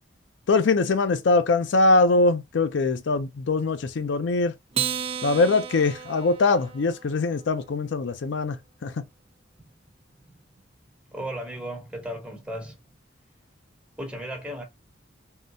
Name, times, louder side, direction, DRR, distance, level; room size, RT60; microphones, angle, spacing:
voice 1, 0.5-4.5 5.2-8.6 8.8-8.9, left 3 dB, 70° left, 0.4 m, -22 dB
Acoustic guitar, 4.7-7.4, right 8 dB, 30° right, 0.4 m, -33 dB
voice 2, 11.1-12.8 14.0-14.6, equal, 5° right, 1.0 m, -35 dB
3.7 x 2.1 x 2.6 m
head